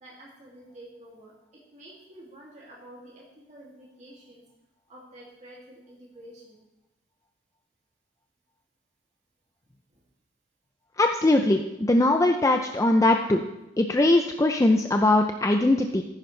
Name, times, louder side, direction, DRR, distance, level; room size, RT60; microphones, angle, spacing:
voice 1, 0.0-1.3 1.7-3.0 3.5-3.6 4.0-4.1 4.9-5.6 6.2-6.3, right 1 dB, 40° right, -5 dB, 2.4 m, -47 dB
voice 2, 11.0-13.4 13.8-16.0, left 2 dB, 15° left, 4 dB, 0.4 m, -21 dB
14.0 x 10.5 x 3.2 m, 0.94 s
head